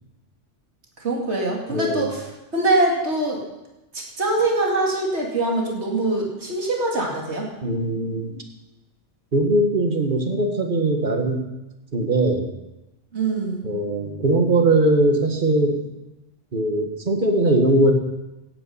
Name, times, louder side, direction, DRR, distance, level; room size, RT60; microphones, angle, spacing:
voice 1, 1.0-3.4 3.9-7.5 13.1-13.7, right 2 dB, 65° right, -1 dB, 2.8 m, -23 dB
voice 2, 1.7-2.1 7.6-8.4 9.3-11.5 11.9-12.5 13.6-15.8 16.5-17.9, right 2 dB, 45° right, 4 dB, 1.8 m, -20 dB
16.5 x 9.3 x 5.6 m, 0.98 s
omnidirectional pair, 1.2 m